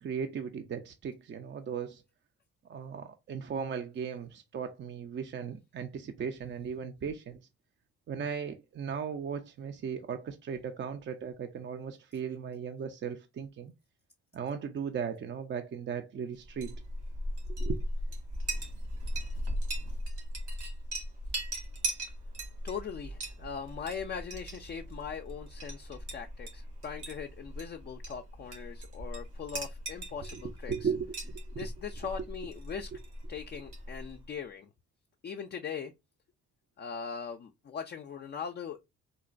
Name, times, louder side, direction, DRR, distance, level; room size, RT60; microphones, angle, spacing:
voice 1, 0.0-2.0 2.7-7.4 8.1-13.7 14.3-16.7 17.6-17.8 30.7-31.7, right 7 dB, 40° right, 0.4 m, -37 dB
Chink clink, 16.4-34.3, equal, 80° right, 1.8 m, -38 dB
voice 2, 22.6-30.9 31.5-32.9 33.3-34.7 35.2-35.9 36.8-38.8, left 6 dB, 35° left, 0.4 m, -40 dB
3.9 x 2.1 x 2.4 m
cardioid pair, 90°, 30 cm